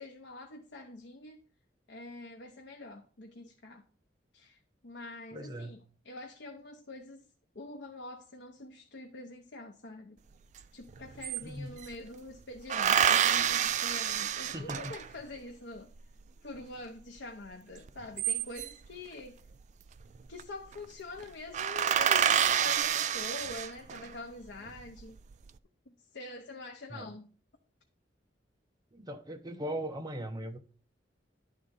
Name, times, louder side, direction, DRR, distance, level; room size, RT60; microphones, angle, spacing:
voice 1, 0.0-1.4 1.9-3.8 4.3-7.2 7.5-10.2 10.7-15.9 16.4-19.4 20.3-25.2 25.9-27.3, left 2 dB, 75° left, 0.8 m, -45 dB
voice 2, 5.3-5.8 11.4-11.8 14.3-14.9 26.9-27.1 28.9-30.6, right 1 dB, 20° right, 0.8 m, -39 dB
sound 1, 10.6-10.7 10.9-11.9 12.7-15.2 17.9-18.9 20.0-20.4 20.7-20.8 21.2-21.3 21.5-24.1 24.7-25.3, right 9 dB, 40° right, 0.3 m, -28 dB
11.0 x 3.8 x 5.3 m
head